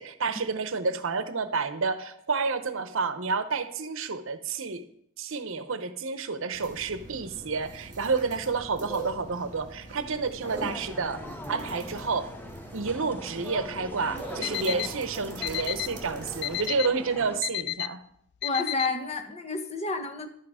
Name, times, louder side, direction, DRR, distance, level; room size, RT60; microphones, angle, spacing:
voice 1, 0.0-4.8 5.2-12.3 12.7-18.0, right 4 dB, 65° right, 11 dB, 0.8 m, -30 dB
sound 1, 6.5-16.7, right 2 dB, 35° right, 2.4 m, -42 dB
sound 2, 10.4-17.4, left 1 dB, 10° left, 0.8 m, -42 dB
Alarm, 14.4-14.9 15.4-15.9 16.4-16.9 17.4-17.9 18.4-18.9, left 18 dB, 50° left, 0.3 m, -30 dB
voice 2, 18.4-20.3, left 3 dB, 30° left, 5 dB, 1.2 m, -30 dB
11.5 x 8.5 x 4.9 m, 0.69 s
head